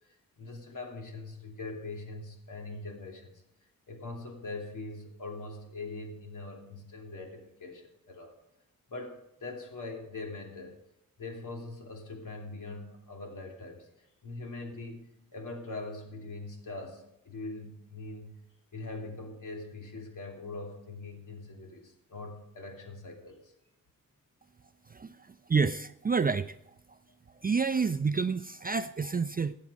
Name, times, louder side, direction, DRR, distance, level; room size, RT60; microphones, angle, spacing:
voice 1, 0.0-3.4 3.9-8.3 8.9-10.8 11.2-13.9 14.2-18.4 18.7-23.5, left 2 dB, 60° left, 2 dB, 2.9 m, -42 dB
voice 2, 25.5-26.5 27.4-29.5, right 5 dB, 25° right, 10 dB, 0.4 m, -28 dB
15.0 x 8.5 x 5.1 m, 0.82 s
cardioid pair, 70°, 35 cm